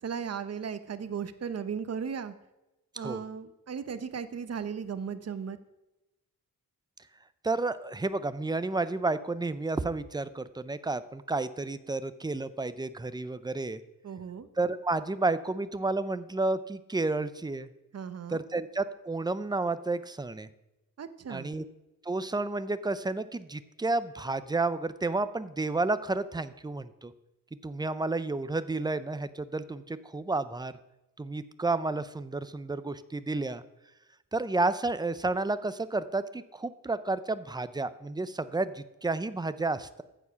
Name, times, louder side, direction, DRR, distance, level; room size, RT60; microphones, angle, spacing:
voice 1, 0.0-2.3 3.0-5.6 14.0-14.5 17.9-18.5 21.0-21.5, right 7 dB, 45° right, 11 dB, 0.8 m, -36 dB
voice 2, 7.4-13.8 14.6-17.7 18.3-20.5 21.3-21.6 22.0-27.1 27.6-30.7 31.2-33.6 34.3-40.0, right 3 dB, 10° right, 13 dB, 0.4 m, -31 dB
14.5 x 7.1 x 5.7 m, 0.99 s
wide cardioid pair, 180°, 35 cm